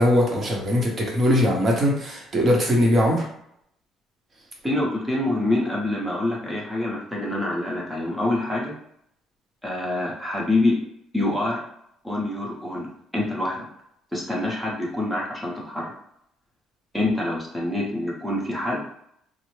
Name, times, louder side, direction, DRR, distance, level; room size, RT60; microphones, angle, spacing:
voice 1, 0.0-3.2, equal, 30° right, -1 dB, 0.9 m, -20 dB
voice 2, 4.6-8.7 9.6-10.8 11.1-11.6 12.0-13.6 14.1-15.9 16.9-18.8, left 2 dB, 5° right, -4 dB, 0.9 m, -26 dB
3.2 x 2.1 x 3.2 m, 0.72 s
cardioid pair, 150°, 0 cm